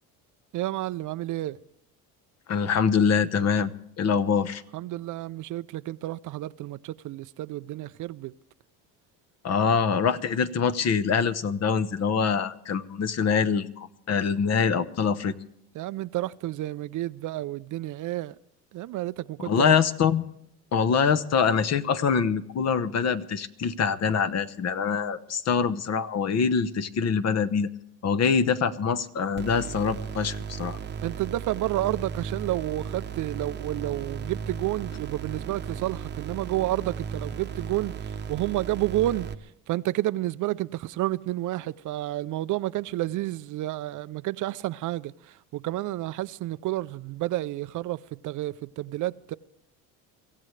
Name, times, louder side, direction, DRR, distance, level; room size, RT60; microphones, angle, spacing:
voice 1, 0.5-1.6 4.7-8.3 15.8-18.3 18.7-19.7 31.0-37.9 38.3-39.3 39.7-45.1 45.5-48.0 48.2-49.3, right 15 dB, 55° right, 0.6 m, -30 dB
voice 2, 2.5-3.7 4.0-4.6 9.4-15.3 19.4-20.2 20.7-27.7 28.0-30.8, left 6 dB, 45° left, 1.0 m, -24 dB
sound 1, 29.4-39.3, right 6 dB, 30° right, 0.9 m, -36 dB
24.0 x 15.5 x 3.3 m
cardioid pair, 105°, 37 cm